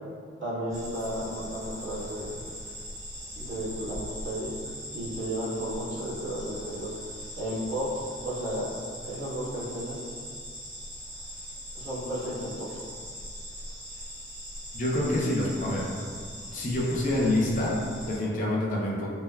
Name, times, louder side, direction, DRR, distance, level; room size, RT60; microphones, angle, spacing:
voice 1, 0.4-2.4 3.4-4.6 4.9-6.9 7.4-8.7 9.0-10.0 11.7-12.7, equal, 80° right, -11 dB, 1.2 m, -33 dB
sound 1, 0.7-18.2, equal, 40° right, 1.0 m, -41 dB
voice 2, 14.7-15.9 16.5-19.1, left 1 dB, 40° left, -3 dB, 0.4 m, -27 dB
3.3 x 2.2 x 2.2 m, 2.1 s
head